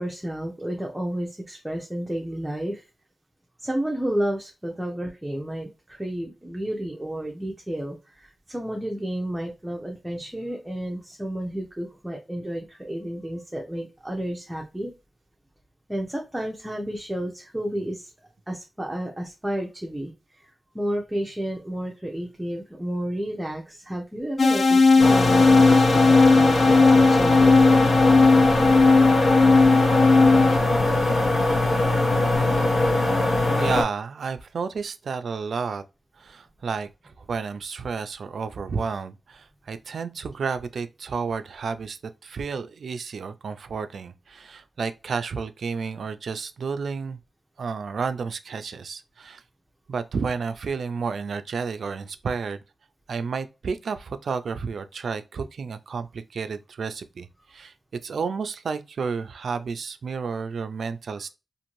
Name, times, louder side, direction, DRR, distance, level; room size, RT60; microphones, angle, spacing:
voice 1, 0.0-2.8 3.6-14.9 15.9-18.1 18.5-27.7, right 1 dB, 10° right, 0.5 m, -31 dB
sound 1, 24.4-30.6, left 3 dB, 50° left, 0.3 m, -17 dB
sound 2, 25.0-33.8, left 2 dB, 75° left, 1.1 m, -21 dB
voice 2, 33.6-35.8 36.2-36.9 37.2-47.2 47.6-49.4 49.9-52.6 53.1-57.7 58.0-61.3, right 5 dB, 70° right, 0.3 m, -31 dB
2.6 x 2.5 x 3.0 m
wide cardioid pair, 145°, 0 cm